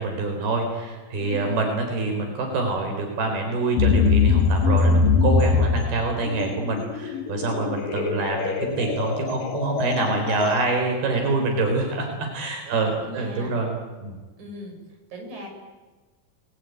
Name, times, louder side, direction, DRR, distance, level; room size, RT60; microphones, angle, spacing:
voice 1, 0.0-13.7 14.0-14.2, right 3 dB, 80° right, 3 dB, 6.1 m, -26 dB
voice 2, 1.2-1.6 12.7-13.5 14.4-14.7 15.1-15.5, equal, 50° right, 2 dB, 7.4 m, -37 dB
sound 1, 3.8-10.7, left 5 dB, 65° left, 3.9 m, -22 dB
28.5 x 21.5 x 9.3 m, 1.3 s
omnidirectional pair, 4.4 m